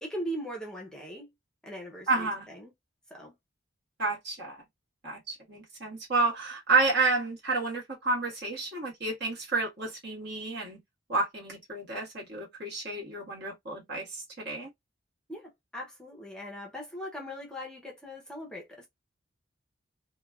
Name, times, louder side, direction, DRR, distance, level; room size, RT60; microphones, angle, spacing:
voice 1, 0.0-1.3 1.6-2.7 3.1-3.3 15.3-18.9, equal, 5° left, 0.6 m, -40 dB
voice 2, 2.1-2.5 4.0-4.6 5.0-10.8 11.1-14.7, right 3 dB, 60° right, 1.5 m, -30 dB
3.0 x 2.2 x 2.3 m
head